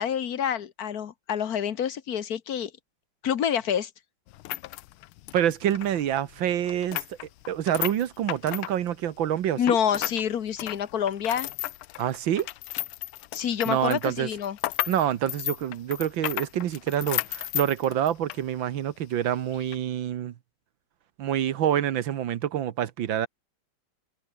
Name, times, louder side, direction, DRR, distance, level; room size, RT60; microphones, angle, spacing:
voice 1, 0.0-2.7 3.2-3.9 9.6-11.5 13.3-14.6, left 8 dB, 55° left, 1.4 m, -27 dB
sound 1, 4.3-10.2 10.5-18.4 18.8-18.9 19.5-19.8, left 16 dB, 90° left, 1.5 m, -34 dB
voice 2, 5.3-7.0 7.5-9.8 12.0-12.5 13.7-14.3 14.9-20.3 21.2-23.3, right 10 dB, 70° right, 1.7 m, -27 dB
omnidirectional pair, 2.3 m